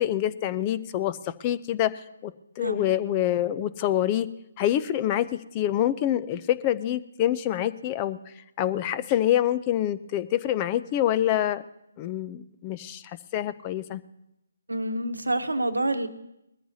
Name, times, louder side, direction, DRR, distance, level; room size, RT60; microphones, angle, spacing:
voice 1, 0.0-4.3 4.6-8.2 8.6-11.6 12.0-14.0, left 12 dB, 25° left, 14 dB, 0.6 m, -26 dB
voice 2, 14.7-16.1, right 1 dB, 80° right, 9 dB, 1.0 m, -27 dB
21.0 x 14.0 x 2.8 m, 0.86 s
figure-of-eight pair, 145°, 0 cm